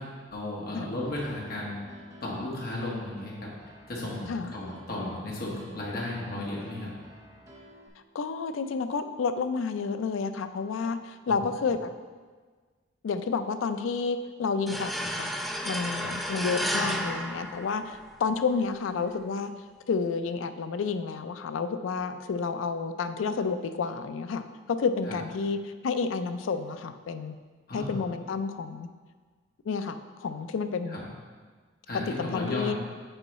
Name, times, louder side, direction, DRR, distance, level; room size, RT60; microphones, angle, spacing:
voice 1, 0.0-1.8 2.2-3.5 3.9-6.9 11.3-11.4 15.0-15.1 16.0-16.1 25.1-25.2 27.7-28.0 30.9-31.0 31.9-32.7, left 1 dB, 50° left, -4 dB, 1.4 m, -35 dB
Piano, 1.0-7.9, right 1 dB, 15° right, 0.7 m, -51 dB
voice 2, 8.1-11.9 13.0-14.9 15.2-15.3 15.6-19.5 19.9-27.4 27.7-28.9 29.7-31.0 32.2-32.7, left 5 dB, 85° left, 10 dB, 0.4 m, -30 dB
sound 1, 14.7-18.2, equal, ahead, 0.3 m, -32 dB
6.9 x 4.6 x 4.1 m, 1.5 s
head